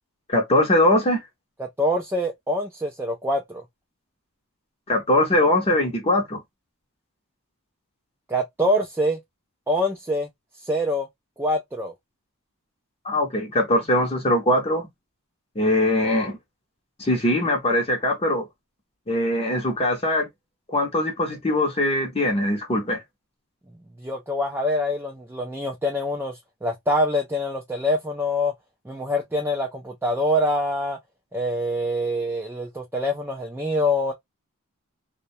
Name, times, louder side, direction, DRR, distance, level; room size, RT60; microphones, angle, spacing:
voice 1, 0.3-1.2 4.9-6.4 13.0-14.9 15.6-16.4 17.0-18.4 19.1-20.3 20.7-23.0, left 1 dB, 25° left, 0.6 m, -21 dB
voice 2, 1.6-3.6 8.3-9.2 9.7-10.3 10.6-11.1 11.4-11.9 24.0-28.5 28.8-31.0 31.3-34.1, left 1 dB, 10° right, 0.3 m, -25 dB
2.2 x 2.1 x 2.6 m
head